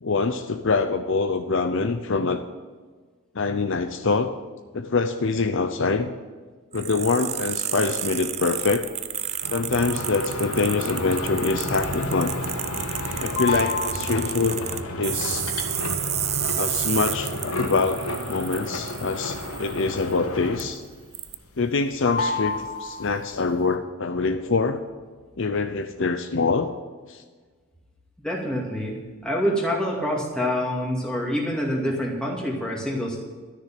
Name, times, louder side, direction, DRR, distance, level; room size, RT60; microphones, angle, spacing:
voice 1, 0.0-2.4 3.3-4.3 4.7-6.1 6.7-8.9 9.5-12.3 13.2-14.7 15.0-15.5 16.6-18.0 18.3-20.8 21.6-24.8 25.4-26.7 27.1-27.2, left 4 dB, 55° left, 7 dB, 0.6 m, -25 dB
sound 1, 6.7-20.1 20.6-20.7 21.1-21.3, right 11 dB, 30° right, 0.5 m, -32 dB
sound 2, 9.4-20.9 21.2-21.8 22.0-23.4, left 2 dB, 80° left, 1.7 m, -31 dB
voice 2, 28.2-29.0 29.2-33.2, equal, 5° left, -3 dB, 2.4 m, -26 dB
13.0 x 6.7 x 8.6 m, 1.4 s
head